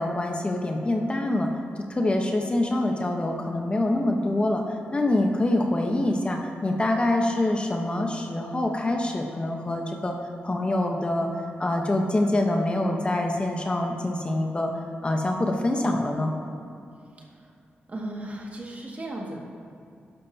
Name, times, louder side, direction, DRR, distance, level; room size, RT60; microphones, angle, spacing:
voice 1, 0.0-1.5 1.9-4.6 4.9-10.2 10.4-11.3 11.6-14.7 15.0-16.3, left 1 dB, 25° left, 2 dB, 0.9 m, -25 dB
voice 2, 17.2-17.5 17.9-19.4, right 1 dB, 40° right, -2 dB, 1.9 m, -36 dB
13.0 x 11.0 x 2.8 m, 2.5 s
cardioid pair, 90°, 4 cm